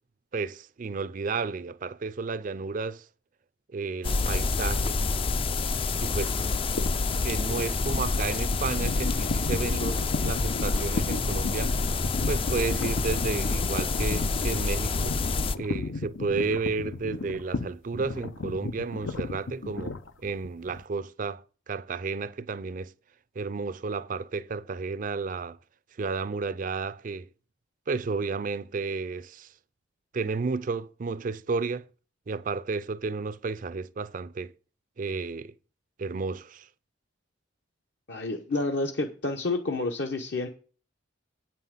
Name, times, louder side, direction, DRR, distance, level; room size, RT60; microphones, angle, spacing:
voice 1, 0.3-3.0 3.7-5.0 6.0-6.5 7.2-11.7 12.2-15.2 15.6-19.9 20.2-22.9 23.4-25.6 26.0-27.3 27.9-29.5 30.1-31.8 32.3-34.5 35.0-35.5 36.0-36.7, right 4 dB, 45° right, 0.4 m, -32 dB
sound 1, 4.0-15.5, left 3 dB, 30° left, 0.4 m, -28 dB
sound 2, 6.8-20.8, left 3 dB, 85° left, 0.8 m, -35 dB
voice 2, 38.1-40.5, left 2 dB, 65° left, 1.0 m, -29 dB
8.8 x 5.6 x 7.3 m
head